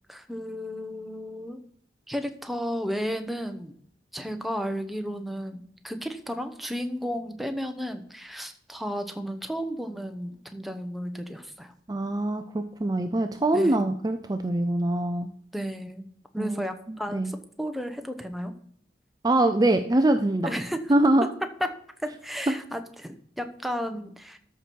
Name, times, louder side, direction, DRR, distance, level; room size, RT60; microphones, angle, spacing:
voice 1, 0.1-1.6 2.1-3.7 4.1-11.7 13.5-13.9 15.5-16.1 16.3-18.5 20.4-20.9 22.0-24.4, equal, ahead, 6 dB, 0.9 m, -33 dB
voice 2, 11.9-15.3 16.4-16.6 16.9-17.3 19.2-20.6 20.9-21.3, right 1 dB, 20° right, 7 dB, 0.5 m, -23 dB
13.0 x 6.0 x 4.6 m, 0.63 s
head